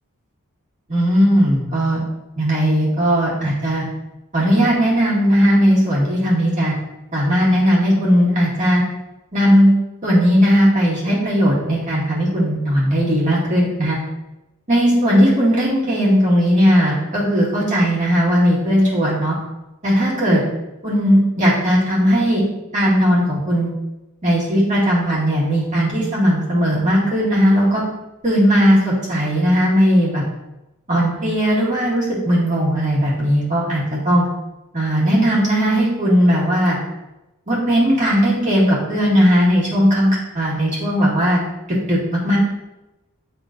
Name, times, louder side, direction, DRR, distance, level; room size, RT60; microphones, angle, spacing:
voice 1, 0.9-2.0 2.4-3.8 4.3-6.7 7.1-8.8 9.3-9.7 10.0-14.0 14.7-19.3 19.8-20.4 20.8-22.4 22.7-23.7 24.2-27.8 28.2-30.2 30.9-34.2 34.7-36.8 37.5-41.4 41.9-42.4, equal, 35° right, -7 dB, 2.1 m, -17 dB
10.0 x 3.7 x 2.6 m, 0.98 s
head